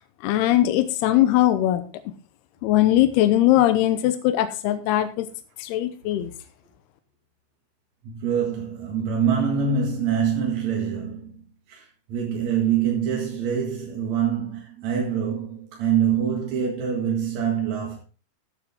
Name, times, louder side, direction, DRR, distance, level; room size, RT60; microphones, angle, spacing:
voice 1, 0.2-1.8 2.6-5.3 5.6-6.3, left 13 dB, 80° left, 2.5 m, -20 dB
voice 2, 8.0-18.0, right 7 dB, 50° right, 2.3 m, -25 dB
14.0 x 8.6 x 3.6 m
omnidirectional pair, 5.1 m